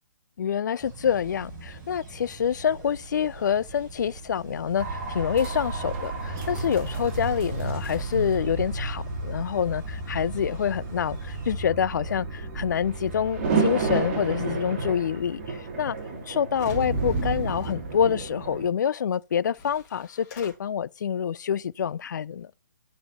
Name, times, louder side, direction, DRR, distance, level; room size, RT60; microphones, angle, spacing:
voice 1, 0.4-16.0 16.3-22.5, left 8 dB, 65° left, 0.4 m, -27 dB
sound 1, 0.8-11.5, right 4 dB, 20° right, 4.4 m, -45 dB
sound 2, 4.8-18.7, right 3 dB, 40° right, 2.3 m, -31 dB
sound 3, 16.0-16.1 16.5-17.8 19.1-19.2 19.5-20.5, left 5 dB, 25° left, 2.5 m, -49 dB
10.0 x 5.0 x 4.1 m
hypercardioid pair, 150°, 10 cm